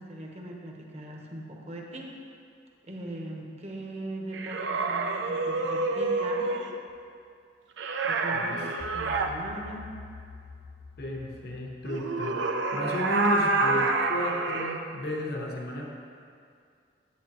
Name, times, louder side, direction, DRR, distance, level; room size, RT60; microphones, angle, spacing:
voice 1, 0.0-2.1 2.8-6.5 8.0-9.9, right 1 dB, 35° right, 0 dB, 1.0 m, -40 dB
sound 1, 4.3-6.7 7.8-9.3 11.9-14.8, right 3 dB, 85° right, 0.6 m, -28 dB
voice 2, 8.3-8.6 11.0-15.8, equal, 60° left, 0 dB, 1.0 m, -33 dB
sound 2, 8.8-11.9, left 4 dB, 60° right, 2.1 m, -46 dB
10.5 x 8.1 x 3.0 m, 2.3 s
head